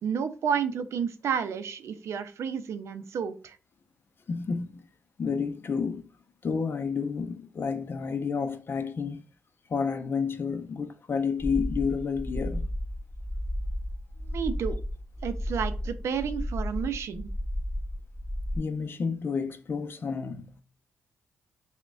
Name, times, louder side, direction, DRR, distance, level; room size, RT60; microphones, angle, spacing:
voice 1, 0.0-3.6 14.3-14.8 15.2-17.3, right 7 dB, 65° right, 0.4 m, -31 dB
voice 2, 4.3-4.9 5.2-6.1 6.4-9.2 9.7-12.7 18.5-20.6, left 5 dB, 50° left, 0.5 m, -30 dB
sound 1, 11.4-18.6, equal, 10° left, 0.7 m, -33 dB
5.8 x 2.2 x 2.4 m
supercardioid pair, 55°, 5 cm